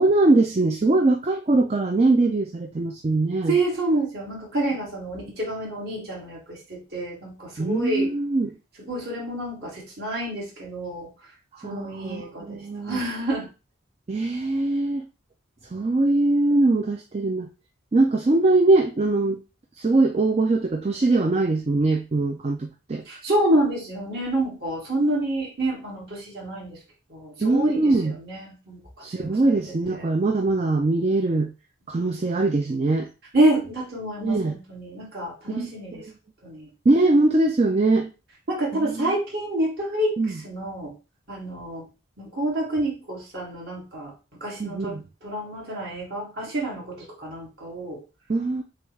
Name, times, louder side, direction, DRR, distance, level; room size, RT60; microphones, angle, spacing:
voice 1, 0.0-3.6 7.6-8.6 11.6-13.0 14.1-15.1 15.7-17.5 17.9-19.4 19.8-23.0 27.4-28.2 29.0-31.5 31.9-33.1 34.2-34.6 35.5-36.1 36.9-38.1 38.7-39.1 40.2-40.3 44.6-45.0 48.3-48.6, right 2 dB, 35° right, 0.4 m, -22 dB
voice 2, 3.5-8.1 8.8-11.1 11.6-13.5 23.1-26.8 27.1-28.8 29.2-30.1 33.3-36.1 36.4-36.7 38.5-40.9 41.3-41.9 42.2-48.0, right 1 dB, 55° right, 2.3 m, -28 dB
6.3 x 2.4 x 3.2 m
head